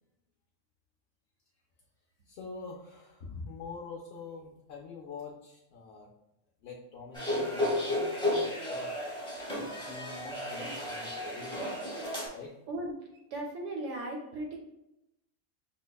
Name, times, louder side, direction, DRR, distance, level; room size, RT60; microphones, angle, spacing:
voice 1, 2.3-6.1 6.6-8.9 9.5-12.0 12.3-12.5, left 4 dB, 65° left, -2 dB, 0.6 m, -45 dB
sound 1, 7.1-12.3, left 1 dB, 5° left, 0.5 m, -33 dB
voice 2, 12.7-14.6, right 1 dB, 65° right, 0 dB, 0.8 m, -37 dB
5.6 x 2.1 x 2.2 m, 0.89 s
omnidirectional pair, 1.5 m